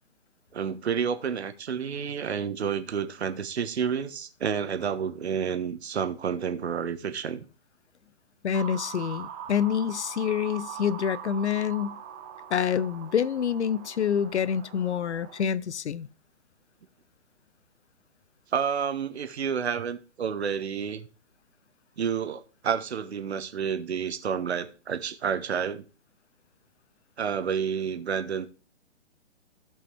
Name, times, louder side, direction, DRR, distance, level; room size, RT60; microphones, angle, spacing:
voice 1, 0.5-7.4 18.5-21.1 22.0-25.8 27.2-28.5, right 7 dB, 65° right, 1.3 m, -30 dB
voice 2, 8.4-12.0 12.5-16.1, left 8 dB, 70° left, 0.7 m, -27 dB
sound 1, 8.5-15.4, right 9 dB, 10° right, 0.4 m, -42 dB
15.5 x 5.4 x 3.4 m
figure-of-eight pair, 135°, 36 cm